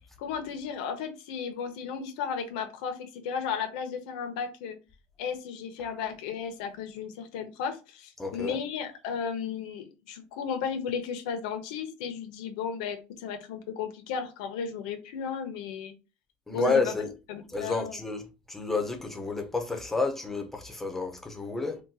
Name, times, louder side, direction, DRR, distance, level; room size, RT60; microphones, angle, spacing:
voice 1, 0.2-4.8 5.2-15.9 16.5-16.9 17.3-18.0, left 6 dB, 85° left, 0.6 m, -34 dB
voice 2, 8.2-8.6 16.5-17.1 17.5-18.2 18.5-21.8, left 3 dB, 5° left, 0.5 m, -30 dB
3.7 x 2.2 x 2.6 m
cardioid pair, 170°, 4 cm